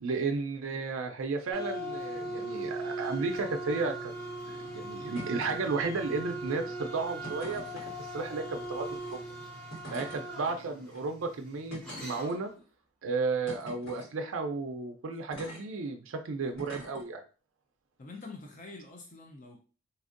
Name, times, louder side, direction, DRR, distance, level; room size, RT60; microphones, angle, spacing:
voice 1, 0.0-4.1 4.5-9.2 9.9-12.5 13.0-17.2, right 4 dB, 65° right, 5 dB, 0.4 m, -33 dB
sound 1, 1.5-12.5, right 2 dB, 5° left, 0.8 m, -39 dB
sound 2, 5.1-5.5 5.8-6.3 7.2-7.9 9.0-9.1 9.7-10.2 10.9-11.0 11.7-12.6 13.5-14.1 15.3-15.6 16.6-17.0 18.1-18.2, equal, 55° left, 1.5 m, -44 dB
voice 2, 9.8-10.2 18.0-19.6, left 3 dB, 35° left, 2 dB, 0.5 m, -46 dB
4.0 x 2.5 x 2.5 m, 0.36 s
head